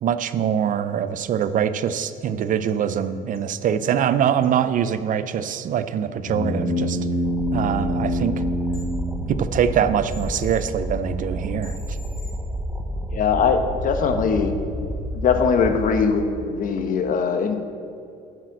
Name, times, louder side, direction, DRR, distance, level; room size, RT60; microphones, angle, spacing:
voice 1, 0.0-7.0 7.5-8.4 9.3-12.0, right 8 dB, 50° right, 12 dB, 0.5 m, -23 dB
sound 1, 1.4-1.5 1.9-3.0 3.3-3.9 4.4-4.5 4.8-4.9 5.3-5.4 8.7-8.9 10.1-10.6 11.6-12.3, left 3 dB, 35° left, 2.0 m, -46 dB
sound 2, 6.2-9.9, equal, 80° left, 2.2 m, -26 dB
sound 3, 7.2-16.1, equal, 5° right, 1.0 m, -30 dB
voice 2, 13.1-14.8 15.1-17.6, left 5 dB, 55° left, 7 dB, 1.0 m, -21 dB
8.6 x 6.4 x 7.7 m, 2.6 s
cardioid pair, 110°, 17 cm